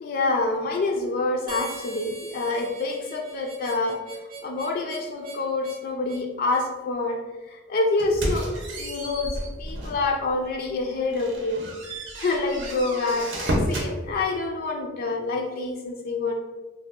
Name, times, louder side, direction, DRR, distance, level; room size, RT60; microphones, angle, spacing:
voice 1, 0.0-4.0 4.4-7.2 7.5-11.7 12.2-16.3, left 3 dB, 50° left, 1 dB, 0.3 m, -27 dB
Harmonica, 1.5-6.7, right 3 dB, 45° right, 0.5 m, -41 dB
sound 1, 8.0-10.1 10.5-10.7 11.1-13.9, equal, 90° right, 0.7 m, -31 dB
2.7 x 2.3 x 3.6 m, 1.2 s
head